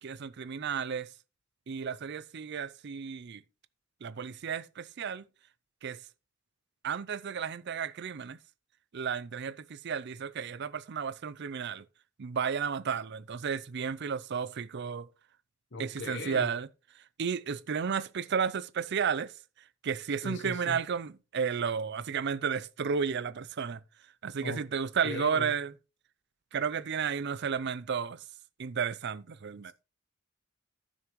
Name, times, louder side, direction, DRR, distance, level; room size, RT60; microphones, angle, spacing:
voice 1, 0.0-1.1 1.7-3.4 4.0-5.3 5.8-6.0 6.8-8.4 8.9-11.8 12.2-15.1 15.8-16.7 17.2-19.3 19.8-23.8 24.2-25.7 26.5-28.2 28.6-29.7, right 6 dB, 55° right, 0.5 m, -33 dB
voice 2, 15.7-16.5 20.2-20.8 24.4-24.6 25.0-25.5, left 2 dB, 60° left, 1.1 m, -38 dB
14.0 x 6.4 x 3.1 m
head